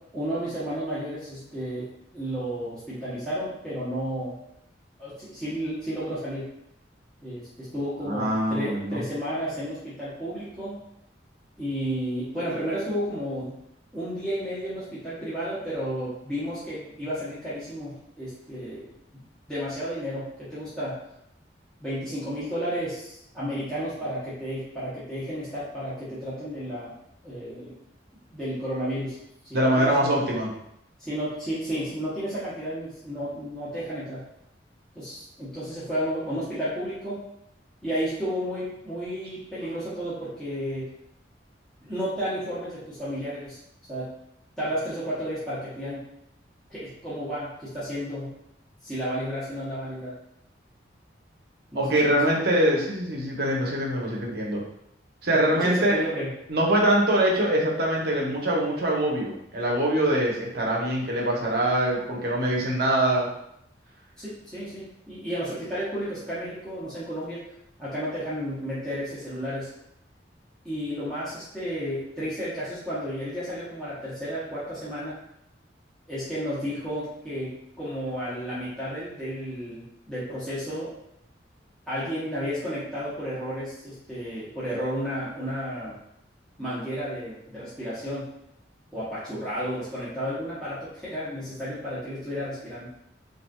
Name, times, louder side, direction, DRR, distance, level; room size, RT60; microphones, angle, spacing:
voice 1, 0.1-4.4 5.0-6.5 7.2-10.8 11.6-13.6 13.9-18.9 19.1-21.0 21.8-26.9 27.2-27.8 28.3-29.2 29.5-30.2 31.0-34.2 34.9-37.2 37.8-40.9 41.8-43.6 43.9-44.1 44.6-46.1 46.7-48.4 48.8-50.1 51.7-52.2 55.5-56.3 64.2-67.4 67.8-69.7 70.6-75.2 76.1-80.9 81.9-86.0 86.6-88.3 88.9-92.9, equal, 5° left, -14 dB, 1.0 m, -32 dB
voice 2, 8.0-9.1 29.5-30.5 51.7-54.6 55.2-56.0 56.5-63.3, right 1 dB, 60° right, -3 dB, 0.8 m, -23 dB
4.2 x 2.5 x 2.3 m, 0.77 s
head